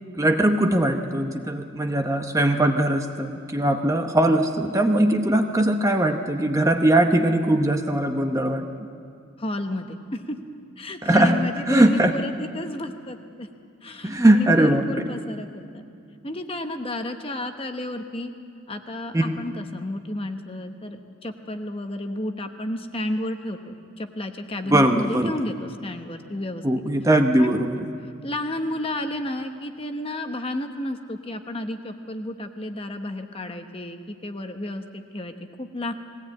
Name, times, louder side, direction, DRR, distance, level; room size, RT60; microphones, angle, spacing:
voice 1, 0.1-8.7 11.0-11.4 11.7-12.1 14.0-15.1 19.1-19.3 24.7-25.3 26.6-27.8, right 1 dB, 15° right, 5 dB, 0.8 m, -20 dB
voice 2, 9.4-10.4 10.8-13.5 13.8-15.8 16.2-18.3 18.7-26.6 27.4-27.7 28.2-35.9, left 1 dB, 25° left, 6 dB, 1.0 m, -32 dB
21.0 x 17.0 x 8.7 m, 2.5 s
head